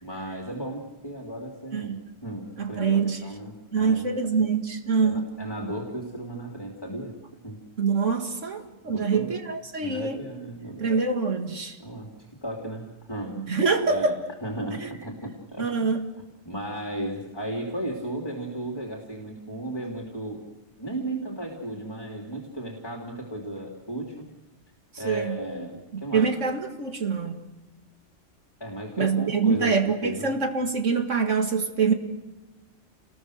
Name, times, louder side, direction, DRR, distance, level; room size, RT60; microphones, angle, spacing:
voice 1, 0.0-2.0 2.2-4.0 5.0-7.1 7.4-7.6 8.8-9.3 9.8-10.8 11.8-12.1 12.4-13.4 13.9-15.9 16.4-20.4 20.8-24.3 25.0-26.3 28.6-30.4, right 1 dB, 20° left, 1 dB, 2.8 m, -35 dB
voice 2, 2.6-3.2 3.7-5.3 7.8-10.2 10.8-11.8 13.4-14.2 14.8-14.9 15.6-16.0 24.9-25.4 25.9-27.4 29.0-31.9, right 5 dB, 75° right, 5 dB, 2.2 m, -25 dB
29.0 x 20.5 x 6.5 m, 1.1 s
omnidirectional pair, 1.3 m